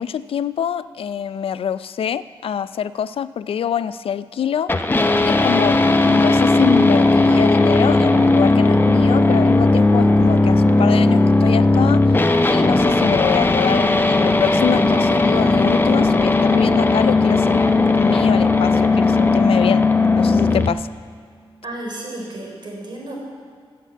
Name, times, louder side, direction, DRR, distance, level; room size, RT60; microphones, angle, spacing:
voice 1, 0.0-4.9 5.2-12.1 12.5-17.6 18.0-19.9 20.2-20.9, left 8 dB, 80° left, 15 dB, 0.4 m, -25 dB
sound 1, 4.7-20.7, left 2 dB, 20° left, 0.7 m, -16 dB
voice 2, 21.6-23.2, right 1 dB, 55° right, -1 dB, 3.8 m, -32 dB
14.5 x 7.3 x 8.2 m, 2.1 s
wide cardioid pair, 105°, 9 cm